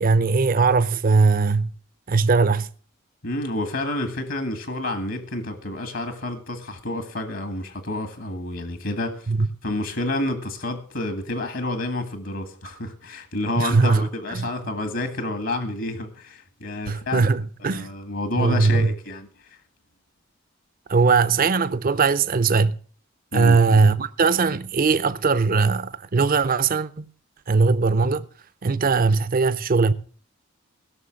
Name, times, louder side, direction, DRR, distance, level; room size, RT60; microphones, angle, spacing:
voice 1, 0.0-1.7 2.1-2.7 9.3-9.5 13.6-14.5 16.9-17.9 18.4-18.9 20.9-22.8 23.3-27.1 27.5-28.2 28.6-29.9, right 4 dB, 40° right, 0.6 m, -20 dB
voice 2, 3.2-9.3 9.6-17.3 17.6-19.6 23.3-23.8, left 1 dB, 65° left, 1.8 m, -29 dB
17.0 x 6.5 x 6.4 m
head